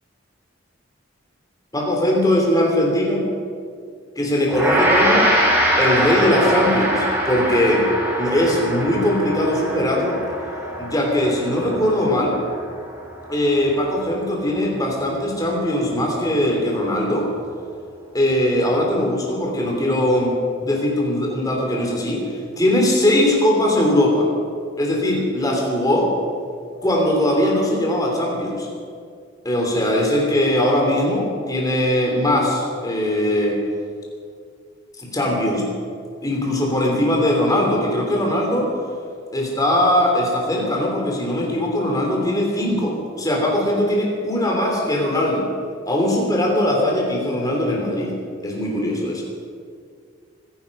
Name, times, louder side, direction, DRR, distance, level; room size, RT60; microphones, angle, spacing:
voice 1, 1.7-3.2 4.1-5.3 5.8-7.9 8.2-10.2 10.8-12.4 13.3-17.3 18.1-20.3 20.6-24.3 24.8-26.1 26.8-28.7 29.4-33.6 35.0-35.6 36.2-38.7 39.3-45.5 45.8-48.1 48.4-49.2, left 1 dB, 20° left, -1 dB, 3.3 m, -20 dB
Gong, 4.5-13.9, equal, 10° right, 3.1 m, -23 dB
24.5 x 10.5 x 5.4 m, 2.2 s
head